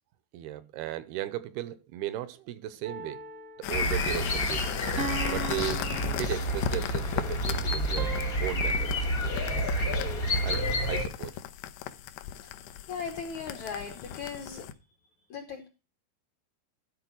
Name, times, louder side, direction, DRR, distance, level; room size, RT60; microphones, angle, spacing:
voice 1, 0.3-3.2 3.6-4.7 5.3-5.8 6.1-8.1 8.4-9.1 10.4-11.4, right 13 dB, 80° right, 2.5 m, -36 dB
sound 1, 2.8-3.8 5.0-6.9 8.0-8.4, right 3 dB, 50° right, 0.9 m, -38 dB
sound 2, 3.6-14.7, left 10 dB, 80° left, 2.9 m, -37 dB
sound 3, 3.7-11.0, equal, 45° left, 1.2 m, -29 dB
voice 2, 12.9-14.7 15.2-15.7, left 6 dB, 65° left, 1.9 m, -38 dB
13.0 x 4.7 x 6.1 m
omnidirectional pair, 4.8 m